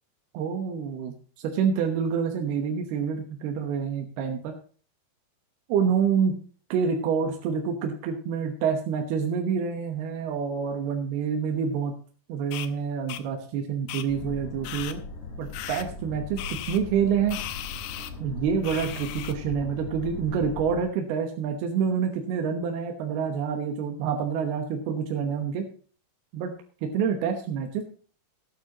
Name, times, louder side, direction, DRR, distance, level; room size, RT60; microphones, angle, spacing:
voice 1, 0.3-4.6 5.7-6.4 6.7-11.9 12.3-15.0 15.4-17.4 18.2-25.7 26.3-26.5 26.8-27.8, right 6 dB, 85° right, 3 dB, 3.1 m, -27 dB
sound 1, 12.5-12.7 13.1-13.2 13.9-14.1 14.6-15.0 15.5-15.9 16.4-16.8 17.3-18.1 18.6-19.3, left 12 dB, 80° left, 2.7 m, -36 dB
sound 2, 14.1-20.8, left 3 dB, 55° left, 3.7 m, -39 dB
16.5 x 9.2 x 2.9 m, 0.41 s
omnidirectional pair, 4.4 m